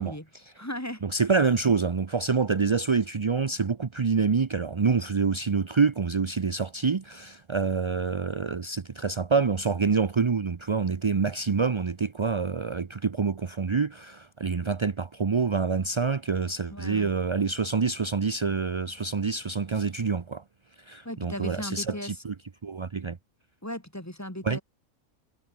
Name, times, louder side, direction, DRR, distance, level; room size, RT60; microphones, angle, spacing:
voice 1, 0.0-1.1 16.7-17.1 21.0-22.2 23.6-24.6, left 1 dB, 10° left, 3.8 m, -37 dB
voice 2, 1.0-20.4 20.9-22.3 22.6-23.2 24.4-24.6, right 5 dB, 40° right, 0.4 m, -26 dB
omnidirectional pair, 1.5 m